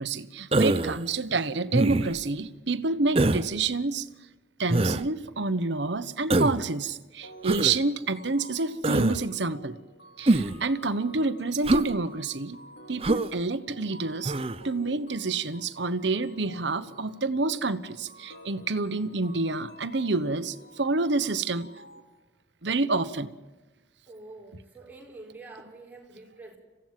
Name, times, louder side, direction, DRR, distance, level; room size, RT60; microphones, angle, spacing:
voice 1, 0.0-4.1 4.6-9.8 10.2-12.6 12.9-14.3 14.6-21.7 22.6-23.3, right 3 dB, 75° right, 13 dB, 1.1 m, -28 dB
Human voice, 0.5-1.0 1.7-2.2 3.2-3.5 4.7-5.0 6.3-6.6 7.4-7.8 8.8-9.2 10.3-10.6 11.6-11.9 13.0-13.3 14.2-14.6, right 2 dB, 30° right, 0.6 m, -24 dB
sound 1, 7.2-22.0, equal, 65° left, 3.9 m, -50 dB
voice 2, 24.1-26.6, right 2 dB, 10° right, -1 dB, 4.5 m, -46 dB
27.0 x 16.0 x 7.6 m, 1.2 s
head